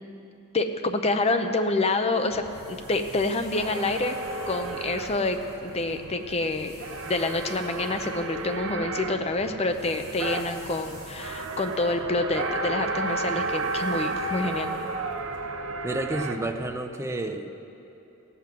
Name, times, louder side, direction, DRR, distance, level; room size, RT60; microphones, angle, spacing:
voice 1, 0.5-2.4 2.7-4.2 4.5-6.7 7.0-14.7, left 2 dB, 30° left, 7 dB, 0.6 m, -27 dB
sound 1, 2.2-9.0 9.3-15.4, equal, 15° left, 2.5 m, -54 dB
sound 2, 2.3-16.8, right 3 dB, 65° right, 0.7 m, -33 dB
voice 2, 15.8-17.5, right 1 dB, 15° right, 5 dB, 0.6 m, -30 dB
16.5 x 5.8 x 7.5 m, 2.9 s
head